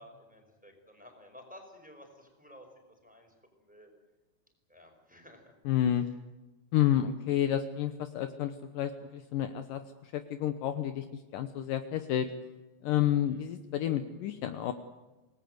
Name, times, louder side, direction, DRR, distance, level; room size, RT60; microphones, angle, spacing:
voice 1, 0.0-3.9 4.7-5.5 13.2-13.5, left 1 dB, ahead, 3 dB, 4.8 m, -54 dB
voice 2, 5.7-6.0 6.7-11.1 11.3-12.3 12.8-14.7, left 11 dB, 70° left, 8 dB, 2.4 m, -30 dB
28.0 x 19.0 x 8.0 m, 1.2 s
omnidirectional pair, 4.3 m